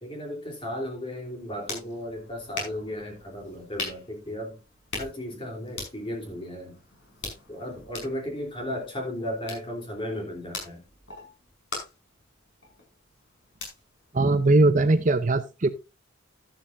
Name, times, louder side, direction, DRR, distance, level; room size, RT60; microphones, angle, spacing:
voice 1, 0.0-4.6 5.0-6.8 7.5-10.8, left 1 dB, 25° left, 3.2 m, -35 dB
sound 1, 1.2-15.0, left 3 dB, 60° left, 5.6 m, -42 dB
voice 2, 14.1-15.7, right 2 dB, 40° right, 0.6 m, -20 dB
12.0 x 11.5 x 2.5 m
head